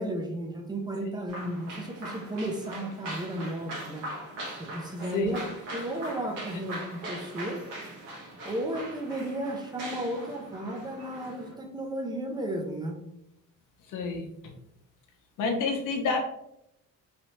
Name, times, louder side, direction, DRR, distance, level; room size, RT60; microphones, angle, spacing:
voice 1, 0.0-4.1 4.7-5.5 5.7-7.6 8.4-13.0, right 1 dB, 15° right, 2 dB, 0.4 m, -34 dB
sound 1, 1.3-11.5, right 1 dB, 70° right, 1.2 m, -41 dB
voice 2, 13.9-14.5 15.4-16.2, left 4 dB, 70° left, 3 dB, 0.8 m, -29 dB
3.2 x 2.7 x 2.9 m, 0.80 s
cardioid pair, 155°, 33 cm